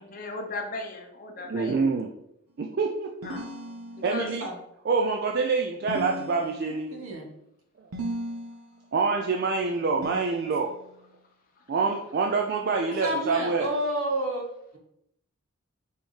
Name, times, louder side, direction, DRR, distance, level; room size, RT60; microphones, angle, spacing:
voice 1, 0.0-1.8 3.2-3.4 4.0-4.3 11.6-11.7, left 2 dB, 40° left, 4 dB, 0.6 m, -36 dB
voice 2, 1.5-2.1 2.6-3.3 4.0-4.5 4.9-6.9 8.9-10.7 11.7-13.7, right 4 dB, 45° right, 1 dB, 0.3 m, -26 dB
sound 1, 3.2-4.4 5.9-7.0 7.9-8.8 10.0-11.0, equal, 85° right, 0.6 m, -37 dB
voice 3, 6.9-7.3 12.9-14.4, right 1 dB, 70° right, 1 dB, 1.0 m, -30 dB
4.3 x 3.4 x 3.1 m, 0.78 s
head